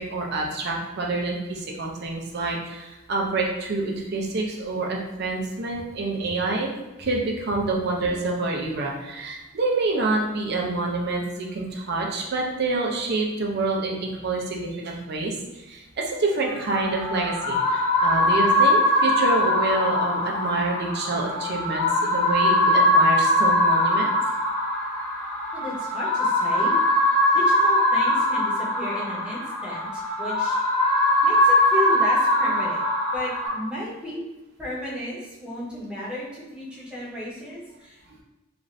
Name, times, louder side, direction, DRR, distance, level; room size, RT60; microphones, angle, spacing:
voice 1, 0.0-6.7 7.0-24.1, right 3 dB, 50° right, 0 dB, 0.5 m, -27 dB
sound 1, 16.5-33.5, left 1 dB, 25° left, 0.8 m, -22 dB
voice 2, 25.5-30.6 31.2-32.8 33.1-34.2 34.6-38.0, left 1 dB, 5° right, -7 dB, 0.7 m, -34 dB
2.5 x 2.5 x 3.1 m, 1.0 s
head